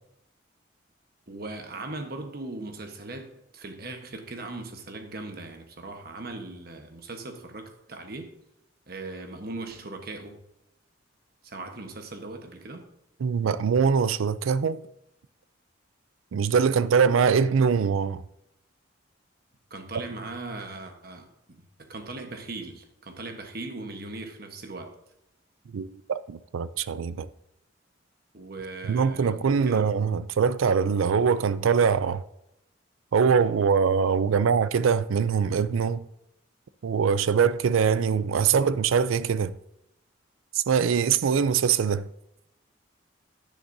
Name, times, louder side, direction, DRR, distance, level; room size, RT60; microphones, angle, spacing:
voice 1, 1.3-3.3 3.5-8.3 8.9-10.3 11.4-12.9 19.7-21.3 21.8-24.9 28.3-29.9, right 2 dB, 50° right, 1.2 m, -39 dB
voice 2, 13.2-14.8 16.3-18.2 25.7-27.3 28.9-32.2 33.1-36.1 36.8-39.5 40.5-42.1, right 6 dB, 85° right, 0.4 m, -23 dB
10.0 x 10.0 x 2.7 m
head